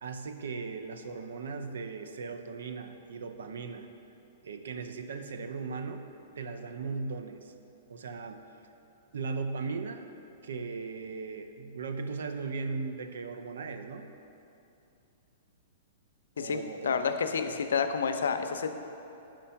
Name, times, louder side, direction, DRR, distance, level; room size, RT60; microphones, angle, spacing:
voice 1, 0.0-3.9 4.4-6.0 6.4-7.5 7.9-8.4 9.1-10.1 10.4-14.1 16.4-17.0, right 4 dB, 80° right, 7 dB, 0.5 m, -37 dB
voice 2, 16.4-18.7, left 6 dB, 85° left, 8 dB, 0.4 m, -29 dB
5.1 x 4.4 x 5.6 m, 2.9 s
hypercardioid pair, 140°, 0 cm